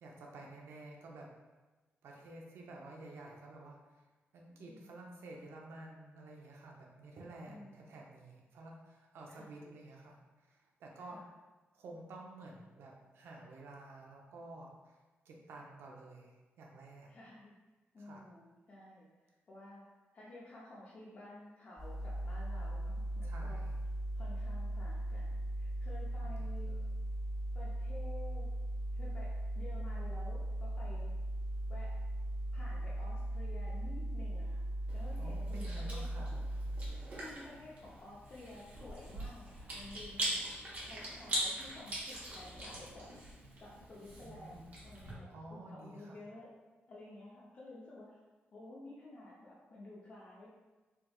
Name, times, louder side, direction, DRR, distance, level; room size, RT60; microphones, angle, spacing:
voice 1, 0.0-1.3 2.0-4.0 4.3-10.2 10.5-11.2 11.7-14.9 15.3-17.1 18.0-18.2 23.2-23.8 26.4-26.8 35.2-36.4 44.2-44.6 45.3-46.2, right 2 dB, 85° right, -1 dB, 0.5 m, -51 dB
voice 2, 7.5-8.0 9.3-9.6 11.0-11.3 17.1-17.6 17.9-19.8 20.1-23.6 24.1-26.8 27.5-28.4 28.9-31.1 31.7-31.9 32.5-34.6 34.9-36.5 36.9-40.5 40.8-43.1 43.6-45.3 45.7-46.5 46.9-48.2 48.5-50.5, left 2 dB, 40° left, -6 dB, 0.5 m, -52 dB
sound 1, 21.8-36.9, right 1 dB, 10° right, 0.5 m, -38 dB
Chewing mastication, 34.9-45.1, right 1 dB, 40° right, 0.8 m, -42 dB
3.4 x 2.9 x 2.2 m, 1.2 s
wide cardioid pair, 180°, 4 cm